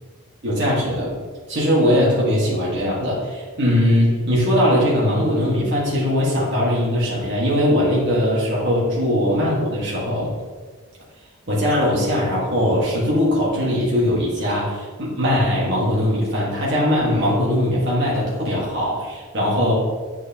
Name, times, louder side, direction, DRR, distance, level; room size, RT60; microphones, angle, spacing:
voice 1, 0.4-1.1 1.5-10.3 11.5-19.7, equal, 50° right, -6 dB, 1.6 m, -20 dB
8.1 x 4.7 x 2.9 m, 1.4 s
head